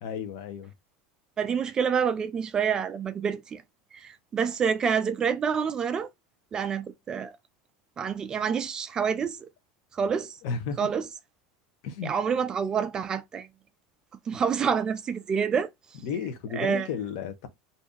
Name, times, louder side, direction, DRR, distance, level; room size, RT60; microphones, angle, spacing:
voice 1, 0.0-0.7 10.4-10.9 11.8-12.1 16.0-17.5, left 6 dB, 60° left, 0.8 m, -33 dB
voice 2, 1.4-3.6 3.9-6.1 6.5-7.4 8.0-9.5 9.9-10.4 10.8-11.1 12.0-13.5 14.3-15.7 16.5-16.9, right 6 dB, 20° right, 0.3 m, -27 dB
2.6 x 2.6 x 3.6 m
supercardioid pair, 160°, 4 cm